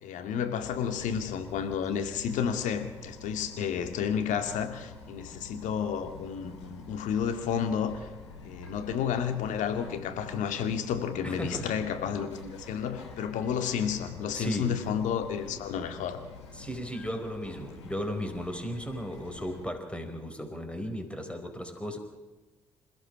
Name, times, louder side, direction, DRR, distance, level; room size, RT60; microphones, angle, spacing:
voice 1, 0.0-8.1 8.4-16.2, left 7 dB, 60° left, 8 dB, 2.3 m, -31 dB
Bird vocalization bird call bird song, 0.6-19.7, left 4 dB, 85° left, 2.6 m, -48 dB
voice 2, 11.2-11.7 14.3-14.7 16.5-22.0, equal, 10° left, 6 dB, 4.7 m, -35 dB
27.5 x 16.0 x 6.2 m, 1.2 s
figure-of-eight pair, 45°, 14 cm